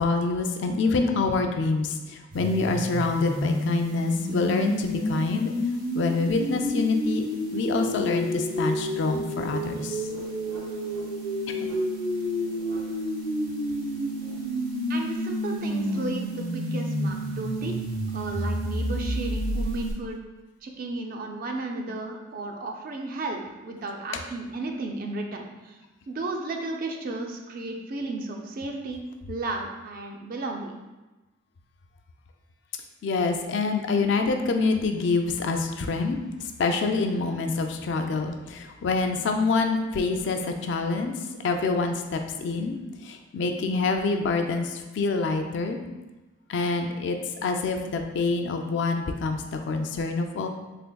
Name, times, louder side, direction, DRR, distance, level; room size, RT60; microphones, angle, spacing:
voice 1, 0.0-5.5 5.9-7.2 7.5-10.0 11.5-11.7 33.0-36.2 36.6-41.1 41.4-45.8 46.5-50.5, left 3 dB, 55° left, 5 dB, 0.3 m, -26 dB
sound 1, 2.3-19.9, equal, 70° right, 1.3 m, -30 dB
voice 2, 14.9-17.8 18.1-20.2 20.6-25.8 26.1-30.8, right 2 dB, 45° right, 2 dB, 0.3 m, -34 dB
3.5 x 3.3 x 2.2 m, 1.1 s
head